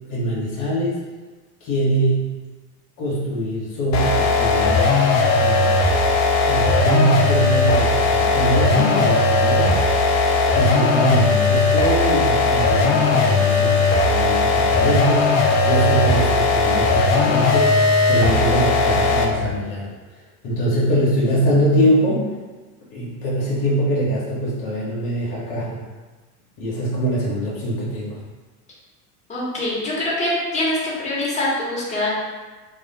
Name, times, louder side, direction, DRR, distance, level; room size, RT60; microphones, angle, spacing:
voice 1, 0.1-1.0 1.6-2.2 3.0-4.9 5.3-5.9 6.4-9.8 10.5-15.4 15.6-19.9 20.4-22.3 22.9-25.8 26.6-28.2, right 1 dB, 55° left, -6 dB, 1.1 m, -23 dB
sound 1, 3.9-19.4, left 3 dB, 35° left, 0.4 m, -18 dB
voice 2, 29.3-32.1, left 1 dB, 15° left, -7 dB, 1.2 m, -24 dB
2.5 x 2.4 x 4.0 m, 1.3 s
hypercardioid pair, 85°, 47 cm